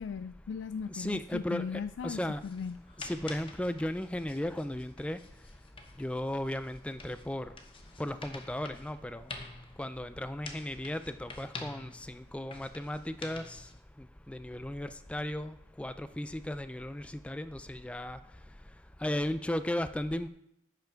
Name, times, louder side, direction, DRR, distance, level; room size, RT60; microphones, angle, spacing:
voice 1, 0.0-2.8, left 6 dB, 90° left, 12 dB, 0.3 m, -38 dB
voice 2, 0.9-2.4 3.0-5.2 6.0-7.5 8.0-9.2 9.8-13.6 14.3-18.2 19.0-20.3, left 1 dB, 5° left, 12 dB, 0.3 m, -35 dB
sound 1, 2.3-13.8, left 3 dB, 30° left, 0.8 m, -49 dB
10.0 x 5.8 x 4.5 m, 0.80 s
head